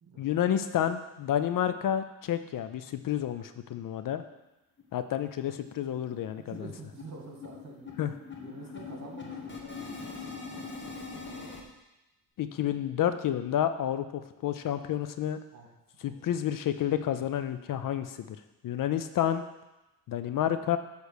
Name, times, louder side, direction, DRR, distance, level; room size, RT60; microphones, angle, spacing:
voice 1, 0.2-4.2 4.9-6.5 8.0-8.1 12.4-15.4 16.0-18.1 18.6-19.4 20.1-20.8, left 10 dB, 60° left, 11 dB, 0.5 m, -30 dB
sound 1, 4.3-4.4 4.8-4.9 5.2-5.4 5.7-11.6, left 4 dB, 30° left, 1.3 m, -43 dB
voice 2, 6.4-8.0 8.4-10.8 11.2-11.6 15.5-15.7 16.0-16.3, right 4 dB, 45° right, 0 dB, 1.8 m, -48 dB
8.0 x 3.4 x 6.4 m, 0.99 s
cardioid pair, 85°, 38 cm